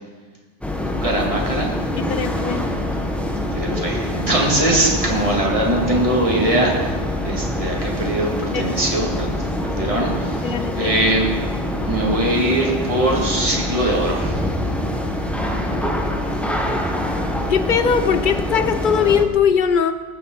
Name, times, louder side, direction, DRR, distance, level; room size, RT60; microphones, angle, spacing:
sound 1, 0.6-19.3, left 1 dB, ahead, 0.6 m, -25 dB
voice 1, 1.0-1.7 3.5-6.9 7.2-9.3 9.6-11.3 11.8-14.4, right 1 dB, 30° right, -2 dB, 1.9 m, -21 dB
voice 2, 2.0-2.7 8.5-8.8 10.4-11.0 15.7-16.0 17.5-19.9, left 7 dB, 55° left, 10 dB, 0.6 m, -20 dB
17.0 x 7.2 x 3.7 m, 1.4 s
omnidirectional pair, 1.2 m